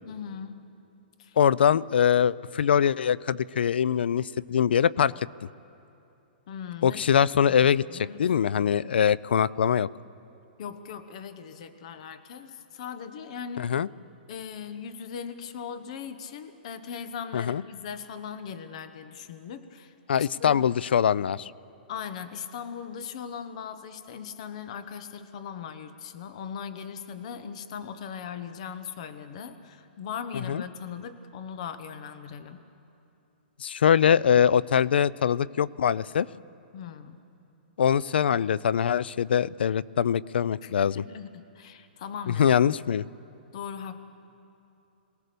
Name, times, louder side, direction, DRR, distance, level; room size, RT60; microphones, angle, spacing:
voice 1, 0.1-0.6 1.2-1.4 6.5-7.0 7.3-7.4 7.8-8.3 10.6-13.7 14.3-19.9 20.4-20.7 21.9-32.6 36.7-37.2 40.6-42.8 43.5-44.0, left 7 dB, 40° left, 11 dB, 1.0 m, -39 dB
voice 2, 1.4-5.1 6.8-9.9 13.6-13.9 17.3-17.6 20.1-21.5 30.5-30.6 33.6-36.3 37.8-41.0 42.4-43.1, left 8 dB, 85° left, 22 dB, 0.4 m, -23 dB
22.5 x 18.0 x 6.8 m, 2.8 s
hypercardioid pair, 170°, 5 cm